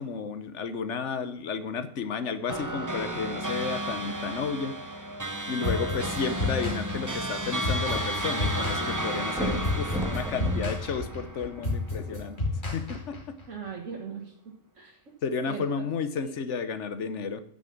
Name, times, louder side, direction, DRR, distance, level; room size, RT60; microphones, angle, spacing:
voice 1, 0.0-4.8 5.5-12.4 12.7-13.3 15.2-17.4, left 5 dB, 70° left, 11 dB, 1.2 m, -32 dB
sound 1, 2.5-12.1, right 1 dB, 15° right, 0.8 m, -33 dB
sound 2, 5.6-13.4, left 2 dB, 40° left, 2.6 m, -31 dB
sound 3, 7.0-8.5 8.8-8.9 9.3-11.9 12.6-12.7, right 1 dB, ahead, 1.9 m, -34 dB
voice 2, 13.5-15.0 15.4-15.9 16.2-16.3, right 6 dB, 75° right, 0 dB, 1.8 m, -40 dB
9.2 x 6.6 x 5.9 m, 0.69 s
omnidirectional pair, 1.3 m